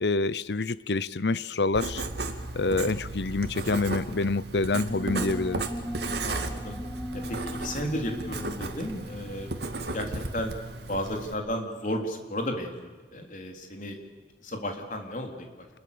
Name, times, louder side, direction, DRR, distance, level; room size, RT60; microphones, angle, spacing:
voice 1, 0.0-2.0 2.5-5.6, left 3 dB, 75° left, 0.8 m, -27 dB
Writing, 1.7-11.3, right 2 dB, 70° right, 2.2 m, -35 dB
sound 1, 4.9-10.1, equal, 5° left, 1.0 m, -39 dB
voice 2, 6.2-6.8 7.1-9.5 9.9-14.0 14.4-15.7, equal, 45° left, 3.6 m, -34 dB
28.0 x 21.5 x 6.9 m
head